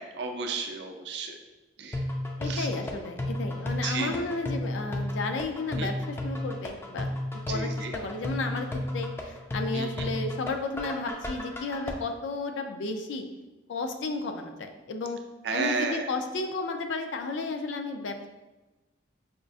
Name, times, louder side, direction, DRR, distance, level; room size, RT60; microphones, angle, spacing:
voice 1, 0.2-1.3 1.8-2.0 2.5-2.7 3.8-4.2 5.8-5.9 7.5-7.9 9.7-9.9 15.5-16.0, right 4 dB, 65° right, 4 dB, 0.4 m, -32 dB
sound 1, 1.9-11.9, left 1 dB, 15° left, 0.3 m, -33 dB
voice 2, 2.4-7.1 7.5-13.2 13.7-15.2 15.5-18.3, left 3 dB, 85° left, 6 dB, 0.4 m, -33 dB
5.0 x 2.4 x 2.3 m, 1.1 s
head